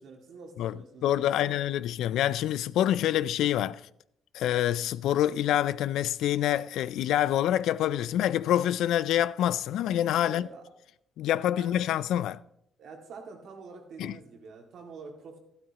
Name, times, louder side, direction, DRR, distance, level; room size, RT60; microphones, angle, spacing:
voice 1, 0.0-1.6 10.2-10.6 11.5-11.8 12.8-15.4, right 4 dB, 75° right, 2.0 m, -46 dB
voice 2, 1.0-3.8 4.3-10.4 11.2-12.4 14.0-14.2, left 12 dB, 85° left, 0.3 m, -26 dB
12.5 x 12.5 x 2.9 m
cardioid pair, 90°, 0 cm